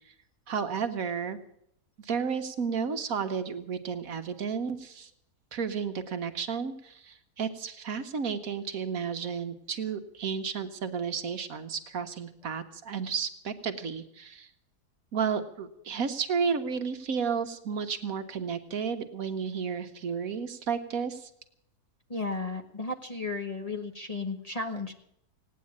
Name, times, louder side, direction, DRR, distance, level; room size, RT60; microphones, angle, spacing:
voice 1, 0.5-1.4 2.0-5.1 5.5-14.5 15.1-21.3, right 6 dB, 60° right, 8 dB, 1.3 m, -32 dB
voice 2, 22.1-24.9, left 3 dB, 25° left, 4 dB, 1.2 m, -34 dB
17.5 x 9.6 x 8.5 m, 0.74 s
omnidirectional pair, 1.7 m